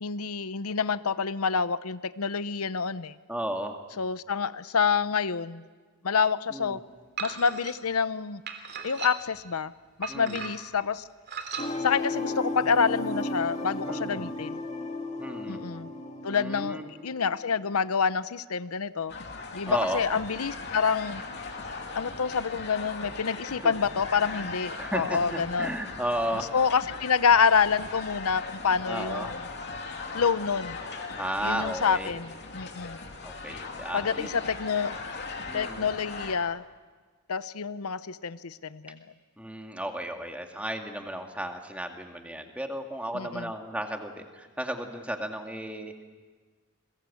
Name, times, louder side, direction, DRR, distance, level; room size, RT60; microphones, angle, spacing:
voice 1, 0.0-3.1 4.0-5.6 6.0-6.8 7.2-8.4 8.8-9.7 10.0-11.0 11.8-14.6 15.5-15.9 16.2-19.1 19.5-21.2 21.9-25.7 26.5-29.3 30.1-30.8 31.4-33.0 33.9-34.9 35.5-36.6 37.3-39.0 43.1-43.5, left 6 dB, 90° left, 15 dB, 0.8 m, -27 dB
voice 2, 3.3-3.8 6.5-6.8 10.1-10.5 13.8-14.3 15.2-15.6 16.3-16.8 19.7-20.0 23.6-23.7 24.1-26.5 28.9-29.4 31.1-32.1 32.5-32.6 33.2-34.4 35.5-35.8 39.4-46.0, right 1 dB, 5° right, 4 dB, 2.1 m, -34 dB
sound 1, 7.2-7.7 8.5-9.4 10.0-10.7 11.3-11.7, right 6 dB, 50° right, 3.2 m, -37 dB
sound 2, 11.6-17.4, left 2 dB, 30° left, 2.4 m, -34 dB
sound 3, 19.1-36.4, left 4 dB, 50° left, 3.0 m, -39 dB
29.5 x 21.5 x 8.5 m, 1.4 s
head